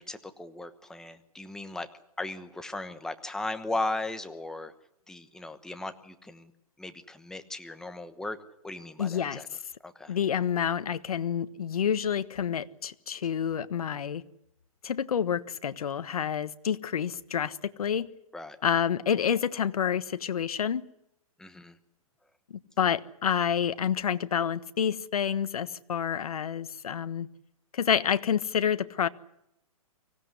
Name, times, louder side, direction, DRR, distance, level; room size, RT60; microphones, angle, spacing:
voice 1, 0.0-1.9 2.2-4.7 5.1-6.5 6.8-8.4 8.6-9.5 9.8-10.2 18.3-18.6 21.4-21.8, left 2 dB, 5° left, 1.1 m, -37 dB
voice 2, 9.0-9.4 10.1-14.2 14.8-18.1 18.6-20.8 22.8-27.3 27.7-29.1, left 8 dB, 75° left, 1.4 m, -28 dB
24.5 x 16.5 x 9.7 m
hypercardioid pair, 155°, 19 cm